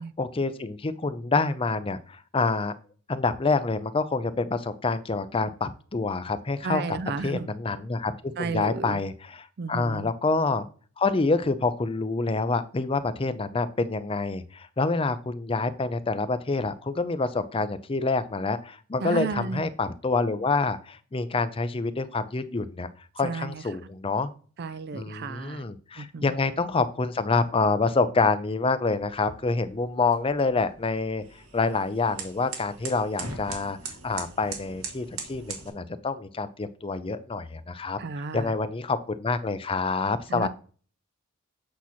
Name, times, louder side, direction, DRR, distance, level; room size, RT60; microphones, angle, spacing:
voice 1, 0.0-2.7 3.1-7.0 7.2-10.7 11.0-22.9 23.2-24.3 24.9-31.2 31.5-33.8 34.0-38.0 38.3-40.5, left 3 dB, 25° left, 0.5 m, -27 dB
voice 2, 6.6-7.5 8.4-9.0 9.6-10.1 19.0-19.7 23.2-23.6 24.6-25.6 26.0-26.3 38.0-38.5 40.3-40.5, right 5 dB, 50° right, 0.4 m, -33 dB
sound 1, 28.9-35.7, right 4 dB, 75° right, 1.7 m, -41 dB
8.4 x 3.0 x 5.8 m
head